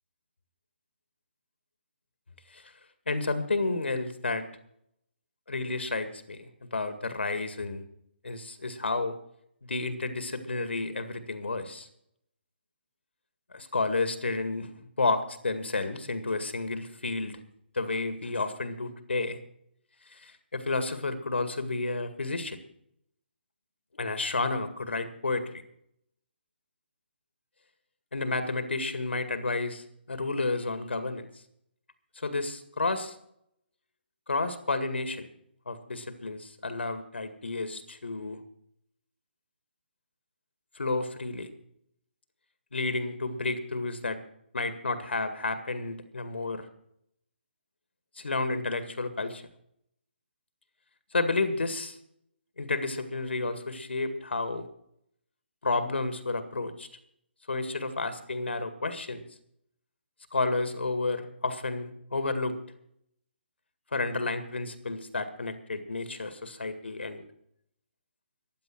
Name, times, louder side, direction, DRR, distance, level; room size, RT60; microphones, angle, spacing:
voice 1, 3.1-4.5 5.5-7.8 8.2-9.1 9.6-11.9 13.5-17.4 17.7-19.4 20.1-22.6 24.0-25.6 28.1-31.3 32.2-33.2 34.3-35.3 35.7-38.4 40.8-41.5 42.7-44.2 44.5-46.7 48.2-49.4 51.1-52.0 52.6-54.7 55.6-56.9 57.5-59.2 60.3-62.6 63.9-67.2, left 3 dB, 75° left, 10 dB, 2.0 m, -31 dB
15.5 x 10.5 x 6.2 m, 0.70 s
figure-of-eight pair, 140°, 6 cm